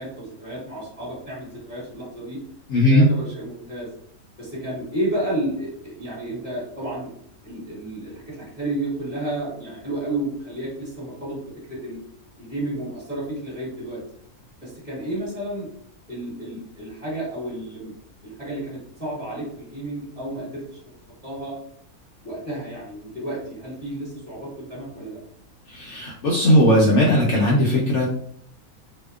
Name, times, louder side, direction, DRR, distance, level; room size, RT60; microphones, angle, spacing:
voice 1, 0.0-2.4 2.8-3.9 4.4-7.1 7.4-12.0 12.4-14.0 14.6-15.7 16.1-18.0 18.2-20.6 21.2-21.6 22.2-25.2, right 1 dB, 25° right, -8 dB, 1.2 m, -31 dB
voice 2, 2.7-3.1 25.7-28.1, equal, 65° left, -4 dB, 0.7 m, -17 dB
2.6 x 2.1 x 2.3 m, 0.66 s
omnidirectional pair, 1.6 m